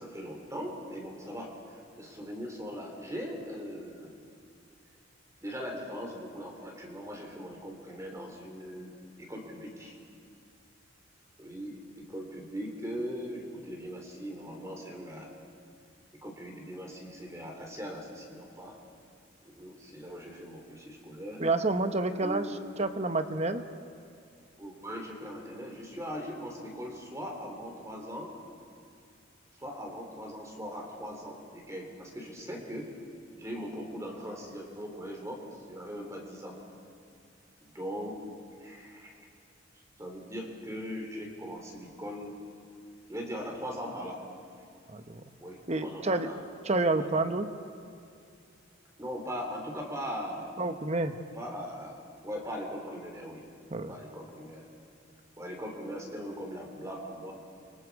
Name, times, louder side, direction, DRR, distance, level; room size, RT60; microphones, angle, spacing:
voice 1, 0.0-4.2 5.4-8.9 9.2-9.9 11.4-15.3 16.2-18.8 19.4-21.4 22.1-22.6 24.6-28.3 29.6-32.9 33.4-36.6 37.6-38.2 38.6-39.1 40.0-42.3 43.1-44.2 45.4-46.4 47.0-47.1 49.0-50.5 51.3-52.0 52.2-53.4 53.9-54.6 55.4-57.3, equal, 15° right, 1 dB, 3.4 m, -40 dB
voice 2, 21.4-22.4 22.8-23.6 44.9-45.2 45.7-46.3 46.6-47.5 50.6-51.1 53.7-54.0, right 2 dB, 35° right, 9 dB, 1.0 m, -29 dB
29.0 x 24.5 x 4.9 m, 2.5 s
head